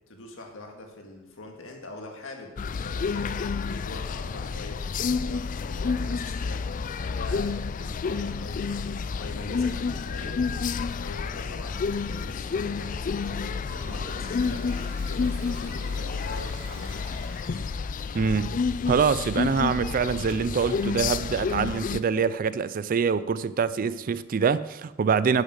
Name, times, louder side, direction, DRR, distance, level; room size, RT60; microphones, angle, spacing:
voice 1, 0.1-3.4 3.7-6.7 7.1-10.4 11.0-14.7 15.0-17.0, left 2 dB, 65° left, 1.8 m, -43 dB
sound 1, 2.6-22.0, left 5 dB, 40° left, 0.3 m, -30 dB
sound 2, 9.8-12.4, equal, 5° left, 2.1 m, -50 dB
Toilet flush, 13.6-18.0, right 2 dB, 65° right, 2.8 m, -46 dB
voice 2, 18.1-18.6 18.9-25.4, right 6 dB, 40° right, 0.3 m, -25 dB
11.0 x 7.2 x 6.4 m
head